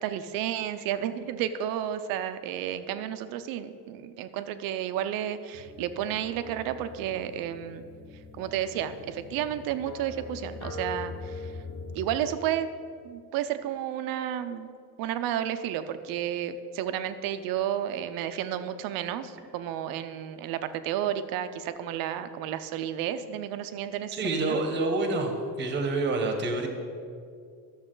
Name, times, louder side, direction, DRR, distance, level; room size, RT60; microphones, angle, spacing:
voice 1, 0.0-7.8 8.4-11.5 11.9-12.7 13.0-14.7 15.0-24.6, right 10 dB, 60° right, 11 dB, 0.5 m, -32 dB
sound 1, 5.5-12.2, left 3 dB, 45° left, 0.9 m, -42 dB
voice 2, 24.1-26.7, right 2 dB, 30° right, 4 dB, 1.0 m, -27 dB
12.0 x 7.1 x 3.8 m, 2.3 s
cardioid pair, 175°, 39 cm